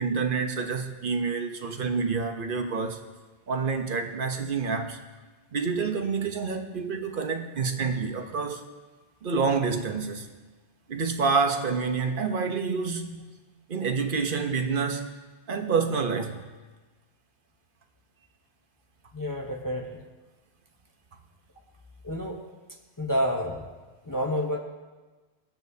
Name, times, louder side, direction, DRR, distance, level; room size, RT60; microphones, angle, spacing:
voice 1, 0.0-3.0 3.5-5.0 5.5-8.6 9.2-10.3 10.9-13.4 13.7-15.1 15.5-16.5, right 5 dB, 50° right, 5 dB, 1.1 m, -28 dB
voice 2, 19.1-19.9 22.0-22.4 23.0-23.6 24.0-24.6, equal, 20° left, 0 dB, 0.9 m, -28 dB
20.5 x 8.8 x 2.8 m, 1.3 s
omnidirectional pair, 1.2 m